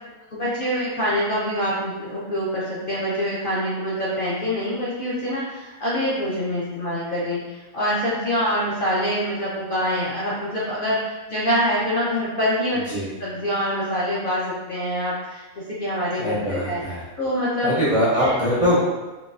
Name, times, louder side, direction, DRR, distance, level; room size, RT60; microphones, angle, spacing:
voice 1, 0.3-12.8 13.2-15.4 15.7-16.8 17.2-17.8 18.2-18.3, equal, 55° left, -8 dB, 0.6 m, -25 dB
voice 2, 12.7-13.1 16.1-17.1 17.6-18.8, equal, 50° right, -8 dB, 0.5 m, -22 dB
3.8 x 2.2 x 2.5 m, 1.2 s
omnidirectional pair, 1.5 m